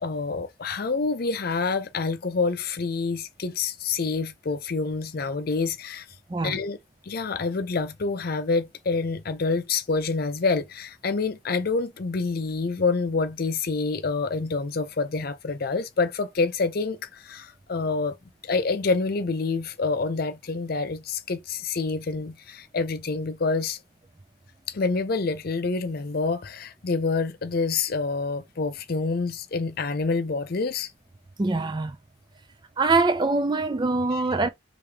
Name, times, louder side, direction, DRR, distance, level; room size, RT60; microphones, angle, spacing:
voice 1, 0.0-6.1 6.4-6.8 7.0-18.2 18.4-23.8 24.7-30.9 34.1-34.2, left 4 dB, 50° left, 0.5 m, -27 dB
voice 2, 31.4-32.0 32.8-34.5, right 3 dB, 20° right, 0.4 m, -23 dB
3.5 x 2.7 x 3.2 m
head